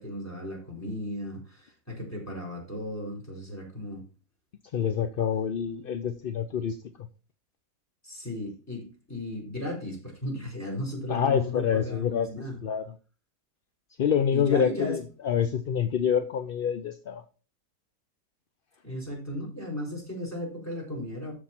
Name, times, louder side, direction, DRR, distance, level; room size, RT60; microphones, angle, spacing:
voice 1, 0.0-4.0 8.0-12.6 14.3-15.0 18.8-21.3, left 1 dB, 10° left, -1 dB, 4.1 m, -35 dB
voice 2, 4.7-7.1 11.1-12.3 12.6-12.8 14.0-17.2, left 8 dB, 55° left, 8 dB, 0.6 m, -27 dB
13.0 x 4.6 x 4.3 m, 0.35 s
omnidirectional pair, 1.5 m